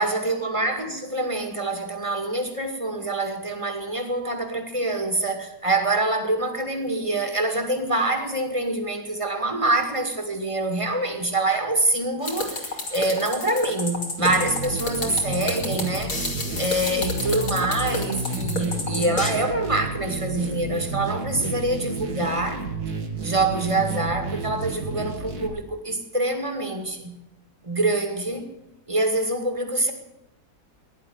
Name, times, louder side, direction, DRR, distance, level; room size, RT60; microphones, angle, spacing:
voice 1, 0.0-16.3 16.6-22.6 23.2-27.2 27.6-28.5 28.9-29.9, right 2 dB, 20° right, 5 dB, 2.2 m, -25 dB
sound 1, 12.2-19.3, left 2 dB, 60° left, 3.3 m, -30 dB
sound 2, 14.2-25.5, right 3 dB, 70° right, 2.5 m, -31 dB
16.0 x 11.0 x 8.0 m, 0.91 s
omnidirectional pair, 1.7 m